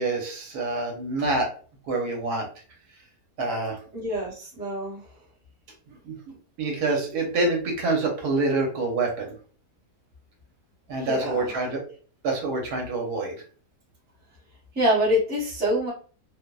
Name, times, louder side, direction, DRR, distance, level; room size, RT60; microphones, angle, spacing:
voice 1, 0.0-1.5 1.9-2.5 3.4-3.8 6.0-6.1 6.6-9.2 10.9-11.8 12.2-13.3, right 3 dB, 70° right, 0 dB, 1.2 m, -26 dB
voice 2, 3.9-5.0 11.0-11.7 14.7-15.9, equal, 10° right, -6 dB, 0.5 m, -25 dB
2.8 x 2.0 x 2.2 m, 0.41 s
omnidirectional pair, 1.8 m